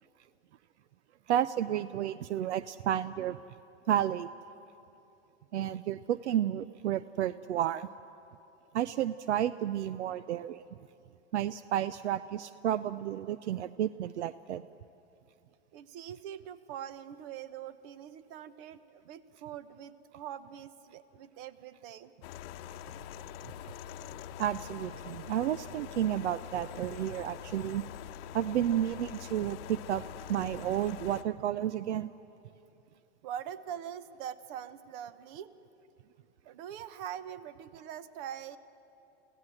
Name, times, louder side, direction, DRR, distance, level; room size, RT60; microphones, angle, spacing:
voice 1, 1.3-3.4 3.9-4.3 5.5-7.9 8.7-10.6 11.3-14.6 24.4-27.8 28.3-32.1, right 11 dB, 85° right, 16 dB, 0.6 m, -31 dB
voice 2, 15.7-22.1 33.2-35.5 36.4-38.6, right 9 dB, 50° right, 14 dB, 1.1 m, -43 dB
sound 1, 22.2-31.2, left 9 dB, 60° left, 0.9 m, -44 dB
26.5 x 16.5 x 7.6 m, 2.8 s
hypercardioid pair, 110°, 34 cm